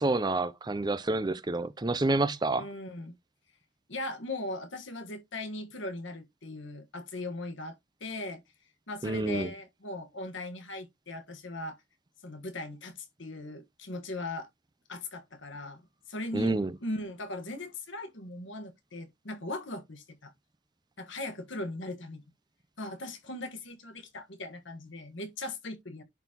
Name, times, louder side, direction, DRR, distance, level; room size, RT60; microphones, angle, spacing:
voice 1, 0.0-2.7 9.0-9.5 16.3-16.7, right 2 dB, 20° right, 0.5 m, -28 dB
voice 2, 2.6-3.2 3.9-8.4 8.9-11.8 12.2-14.5 14.9-15.8 16.1-20.3 21.0-22.2 22.8-26.0, left 1 dB, 60° left, 1.4 m, -39 dB
11.0 x 4.0 x 2.9 m
head